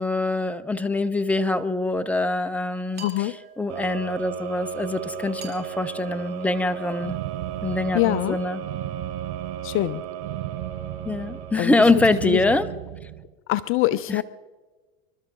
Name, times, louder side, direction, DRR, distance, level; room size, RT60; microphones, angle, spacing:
voice 1, 0.0-3.3 3.6-7.2 7.6-8.6 11.0-12.7 14.1-14.2, left 2 dB, 5° left, 13 dB, 0.8 m, -24 dB
sound 1, 2.9-4.0 5.4-7.3, right 8 dB, 30° right, 4.9 m, -46 dB
voice 2, 3.0-3.4 7.9-8.4 9.6-10.0 11.6-11.8 12.2-12.4 13.5-14.2, left 16 dB, 40° left, 16 dB, 0.5 m, -24 dB
sound 2, 3.7-12.6, right 8 dB, 50° right, 2.9 m, -36 dB
sound 3, 7.0-13.3, right 16 dB, 65° right, 0.9 m, -35 dB
26.5 x 12.5 x 3.9 m, 1.3 s
hypercardioid pair, 95°, 34 cm